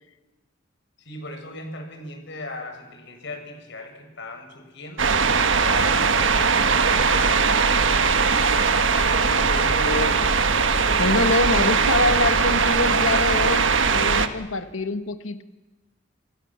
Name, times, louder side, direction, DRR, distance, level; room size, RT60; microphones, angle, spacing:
voice 1, 1.0-5.2 5.6-7.7, left 2 dB, 60° left, 5 dB, 6.4 m, -38 dB
sound 1, 5.0-14.3, right 5 dB, 65° right, 1.5 m, -20 dB
voice 2, 9.1-10.2 11.0-15.4, left 2 dB, 90° left, 10 dB, 1.6 m, -25 dB
29.5 x 26.5 x 7.4 m, 1.1 s
head